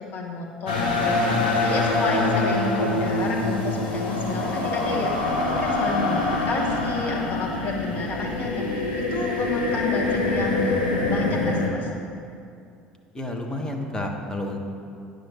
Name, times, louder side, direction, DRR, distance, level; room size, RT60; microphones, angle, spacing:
voice 1, 0.1-8.9 9.1-10.8 11.1-11.9, left 3 dB, 45° left, -1 dB, 1.4 m, -30 dB
sound 1, 0.7-11.7, left 2 dB, 75° left, 1.0 m, -25 dB
voice 2, 13.1-14.6, left 1 dB, 15° left, 1 dB, 1.1 m, -30 dB
9.6 x 6.5 x 4.2 m, 2.4 s
figure-of-eight pair, 65°, 5 cm